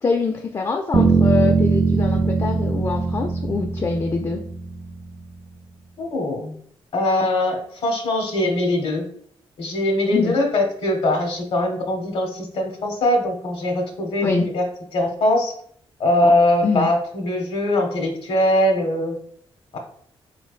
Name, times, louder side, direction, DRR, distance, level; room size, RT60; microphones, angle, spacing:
voice 1, 0.0-4.4 10.1-10.3 14.2-14.5 16.6-16.9, left 4 dB, 35° left, 4 dB, 0.3 m, -24 dB
sound 1, 0.9-5.0, right 4 dB, 20° right, 0.5 m, -20 dB
voice 2, 6.0-6.5 6.9-9.0 9.6-14.6 14.9-15.5 16.0-19.2 19.7-19.8, left 1 dB, 75° left, 2 dB, 0.8 m, -21 dB
3.9 x 3.2 x 2.4 m, 0.63 s
wide cardioid pair, 115°, 10 cm